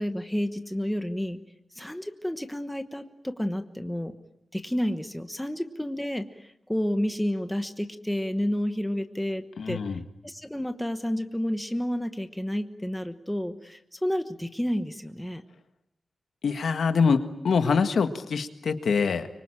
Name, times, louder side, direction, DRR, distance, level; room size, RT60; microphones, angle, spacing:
voice 1, 0.0-1.4 1.7-4.1 4.5-9.8 10.2-15.4, equal, 5° left, 8 dB, 1.1 m, -30 dB
voice 2, 9.6-10.0 16.4-19.3, left 5 dB, 70° left, 8 dB, 1.8 m, -24 dB
25.0 x 24.5 x 9.0 m, 0.79 s
wide cardioid pair, 175°, 0 cm